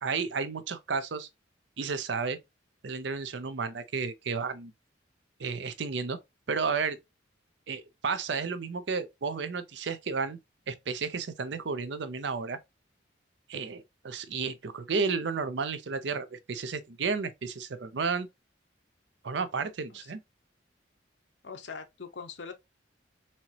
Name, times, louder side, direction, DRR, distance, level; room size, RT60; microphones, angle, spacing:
voice 1, 0.0-1.3 1.8-2.4 2.8-4.7 5.4-6.2 6.5-7.0 7.7-10.4 10.7-12.6 13.5-18.3 19.2-20.2, right 5 dB, 65° right, 0.5 m, -32 dB
voice 2, 21.4-22.5, left 5 dB, 65° left, 0.7 m, -42 dB
4.3 x 2.9 x 2.8 m
head